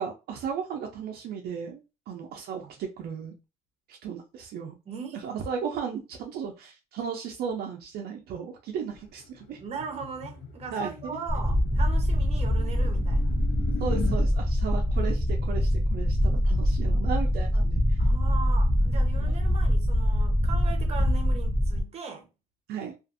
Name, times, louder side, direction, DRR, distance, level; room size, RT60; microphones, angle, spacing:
voice 1, 0.0-3.3 3.9-4.8 5.2-9.6 10.7-11.2 13.8-17.8 19.2-19.3 22.7-22.9, right 6 dB, 70° right, 0.5 m, -35 dB
voice 2, 4.9-5.2 9.6-13.3 18.0-22.3, right 5 dB, 40° right, 0.8 m, -39 dB
sound 1, 8.9-14.2, left 6 dB, 85° left, 0.7 m, -41 dB
sound 2, 11.3-21.8, equal, 5° right, 0.4 m, -24 dB
2.5 x 2.5 x 2.5 m
cardioid pair, 110°, 17 cm